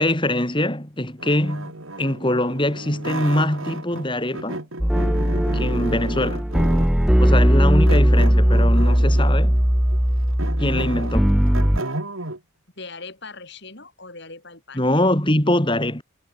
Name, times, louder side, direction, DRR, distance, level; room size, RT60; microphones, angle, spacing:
voice 1, 0.0-1.7 2.0-4.6 5.5-6.4 7.2-9.6 10.6-11.3 14.7-16.0, left 1 dB, 25° left, 3.4 m, -23 dB
sound 1, 1.2-4.1 4.3-7.0 7.9-9.4 9.9-12.4, right 2 dB, 70° right, 3.4 m, -33 dB
sound 2, 4.8-11.8, equal, 5° right, 0.5 m, -18 dB
voice 2, 12.8-14.8, left 3 dB, 55° left, 5.5 m, -40 dB
head